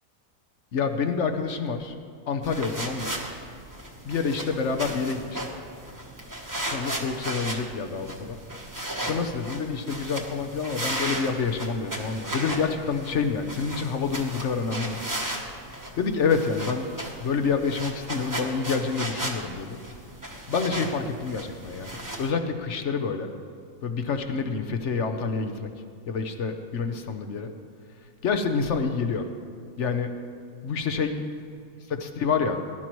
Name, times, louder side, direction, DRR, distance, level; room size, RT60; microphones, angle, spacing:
voice 1, 0.7-1.9 2.3-3.1 4.0-5.4 6.6-8.4 9.0-15.0 16.0-16.9 17.2-19.8 20.5-21.9 22.2-23.3 23.8-25.7 26.1-27.5 28.2-29.3 29.8-30.1 30.6-31.3 32.0-32.6, left 5 dB, 55° left, 6 dB, 0.9 m, -27 dB
sound 1, 2.4-22.3, right 1 dB, 15° right, 1.0 m, -35 dB
19.0 x 11.5 x 3.1 m, 2.3 s
omnidirectional pair, 1.9 m